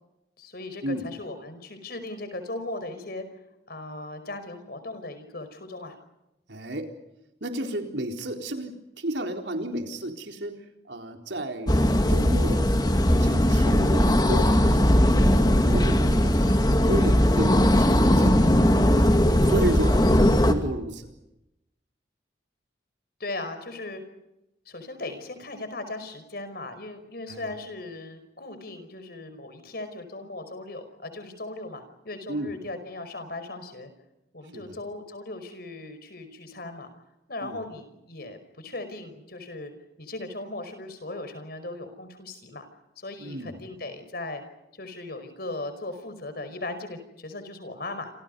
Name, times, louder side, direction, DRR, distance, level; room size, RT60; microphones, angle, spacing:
voice 1, 0.4-3.3 3.7-6.0 23.2-24.0 24.7-33.9 34.3-36.9 37.3-39.7 40.0-42.7 43.0-44.4 44.7-48.1, left 2 dB, 55° left, 9 dB, 5.3 m, -38 dB
voice 2, 6.5-6.9 7.4-10.5 10.9-11.8 12.1-15.1 15.4-21.1 27.3-27.5 32.3-32.5 34.5-34.8 37.4-37.6 43.2-43.6, right 1 dB, 75° right, 4 dB, 4.0 m, -33 dB
sound 1, 11.7-20.5, left 1 dB, 20° left, 2.3 m, -19 dB
28.5 x 28.0 x 5.4 m, 0.90 s
head